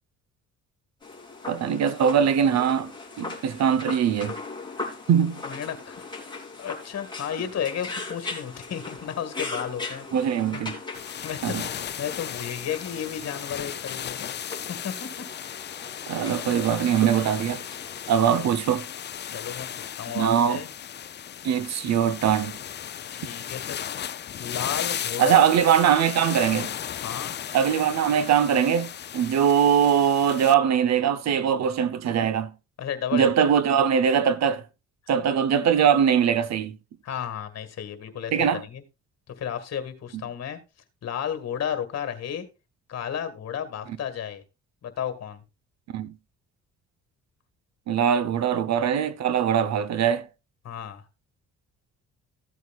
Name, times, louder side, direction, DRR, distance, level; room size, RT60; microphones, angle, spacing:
sound 1, 1.0-18.4, left 3 dB, 15° left, 3.1 m, -39 dB
voice 1, 1.5-2.9 3.2-4.3 5.1-5.4 10.1-10.8 11.4-11.6 16.1-17.6 18.1-18.9 20.1-20.6 21.4-22.5 25.2-26.7 27.5-32.5 33.1-34.6 35.1-36.8 38.3-38.6 45.9-46.1 47.9-50.3, right 8 dB, 60° right, 0.8 m, -22 dB
voice 2, 5.4-6.0 6.6-10.1 10.5-10.6 11.0-14.3 14.7-15.3 18.3-18.5 19.3-20.7 23.1-23.9 24.4-25.4 27.0-27.3 32.8-33.3 37.0-38.8 39.4-40.6 41.0-42.5 42.9-44.4 44.8-45.4 50.6-51.0, left 8 dB, 55° left, 1.9 m, -33 dB
sound 2, 10.9-30.5, left 9 dB, 35° left, 0.4 m, -36 dB
15.0 x 8.2 x 2.4 m
cardioid pair, 90°, 30 cm